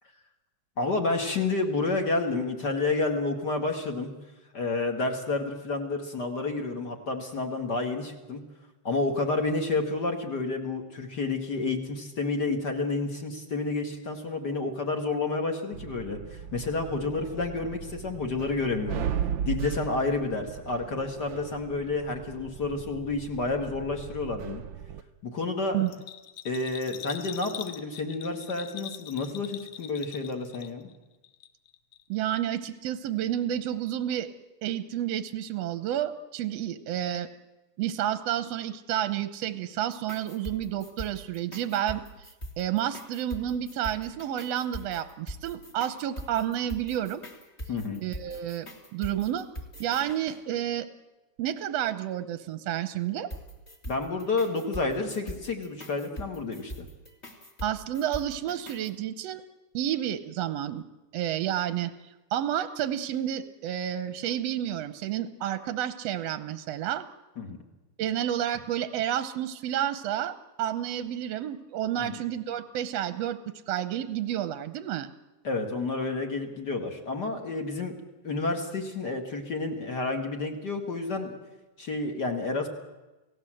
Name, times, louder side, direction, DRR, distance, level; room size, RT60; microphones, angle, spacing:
voice 1, 0.8-4.1 4.5-8.4 8.8-19.1 19.5-24.6 25.2-25.8 26.4-30.9 47.7-48.0 53.9-56.9 67.4-67.6 72.0-72.1 75.4-78.0 78.2-81.3 81.8-82.7, left 3 dB, 35° left, 3 dB, 2.3 m, -30 dB
sound 1, 15.7-25.0, right 8 dB, 85° right, 1.0 m, -37 dB
Bell, 25.9-31.0 31.2-32.0 32.3-32.4, left 11 dB, 75° left, 2.4 m, -42 dB
voice 2, 32.1-34.3 34.6-37.3 37.8-42.3 42.6-47.2 48.0-48.7 48.9-49.5 49.8-50.9 51.4-53.3 57.6-59.4 59.7-60.8 61.1-61.9 62.3-67.0 68.0-75.1, right 11 dB, 70° right, 11 dB, 1.8 m, -30 dB
sound 2, 39.8-50.4 53.3-58.9, equal, 20° left, 3.0 m, -42 dB
29.0 x 17.0 x 7.7 m, 1.1 s
omnidirectional pair, 3.5 m